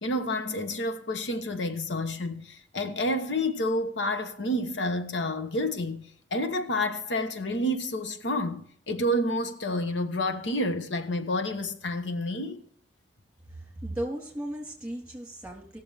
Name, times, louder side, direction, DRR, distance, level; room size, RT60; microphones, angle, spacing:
voice 1, 0.0-12.6, left 1 dB, 85° left, 1.1 m, -29 dB
voice 2, 13.5-15.8, right 1 dB, 5° right, 3.6 m, -36 dB
18.5 x 7.0 x 3.4 m
head